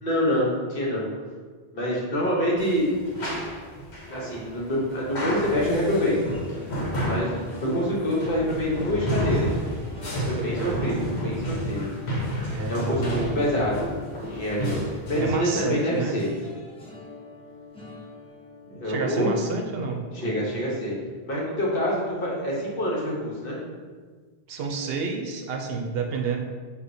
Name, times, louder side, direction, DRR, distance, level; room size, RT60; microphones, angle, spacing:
voice 1, 0.0-1.1 1.7-3.0 4.1-6.3 7.1-9.6 10.3-11.9 12.7-13.9 14.2-16.3 18.7-19.3 20.1-21.0 21.3-23.6, equal, 60° left, -4 dB, 1.2 m, -26 dB
sound 1, 2.6-15.4, equal, 85° left, 1.2 m, -31 dB
sound 2, 6.5-21.6 22.0-22.3 22.6-22.8, left 2 dB, 5° left, 0.6 m, -46 dB
voice 2, 10.4-10.8 12.5-13.3 15.2-16.2 18.8-20.0 24.5-26.4, right 5 dB, 70° right, 2 dB, 0.8 m, -29 dB
6.3 x 2.6 x 2.6 m, 1.5 s
omnidirectional pair, 1.1 m